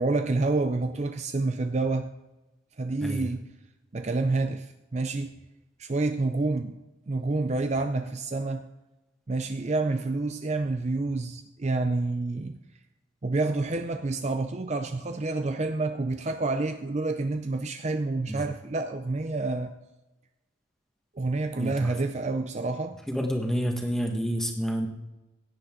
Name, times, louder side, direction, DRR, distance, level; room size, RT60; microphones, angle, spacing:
voice 1, 0.0-2.1 2.8-3.4 3.9-5.3 5.8-6.8 7.1-8.7 9.3-12.6 13.2-19.7 21.2-23.0, right 3 dB, 35° right, 7 dB, 0.5 m, -28 dB
voice 2, 21.6-21.9 23.1-24.9, equal, ahead, 2 dB, 1.5 m, -29 dB
17.0 x 9.9 x 3.8 m, 1.0 s
head